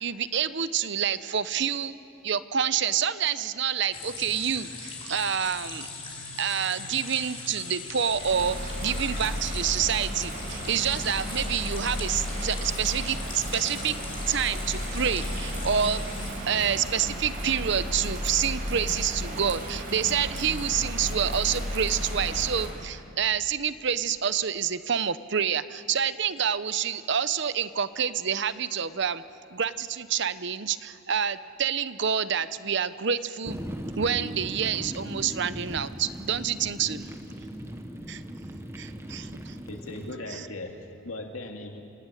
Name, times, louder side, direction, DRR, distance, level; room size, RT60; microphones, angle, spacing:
voice 1, 0.0-1.9 2.2-5.9 6.4-14.0 14.3-16.0 16.5-29.2 29.5-33.6 34.0-37.1 38.1-38.2 38.8-39.5 40.3-40.5, right 8 dB, 55° right, 14 dB, 0.8 m, -28 dB
sound 1, 3.9-16.3, left 3 dB, 25° left, 4.1 m, -40 dB
Bird vocalization bird call bird song / Rain, 8.0-22.7, equal, 40° right, 5.8 m, -33 dB
sound 2, 33.4-40.2, equal, 10° right, 1.1 m, -38 dB
voice 2, 39.7-41.8, left 2 dB, 80° left, 3 dB, 2.4 m, -38 dB
28.0 x 16.5 x 9.2 m, 2.5 s
head